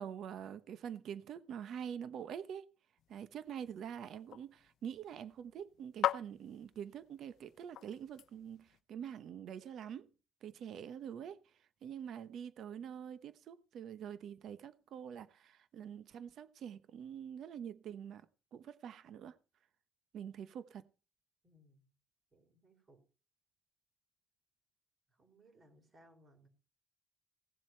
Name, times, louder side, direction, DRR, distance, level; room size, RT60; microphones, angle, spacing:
voice 1, 0.0-2.6 3.1-10.1 10.4-11.4 11.8-18.2 18.5-19.3 20.1-20.8, right 8 dB, 60° right, 0.9 m, -45 dB
sound 1, 3.0-8.8, left 12 dB, 70° left, 0.5 m, -43 dB
voice 2, 21.4-21.9 22.3-23.0 25.1-26.5, right 1 dB, 30° right, 3.7 m, -65 dB
17.0 x 7.6 x 4.4 m
cardioid pair, 145°, 0 cm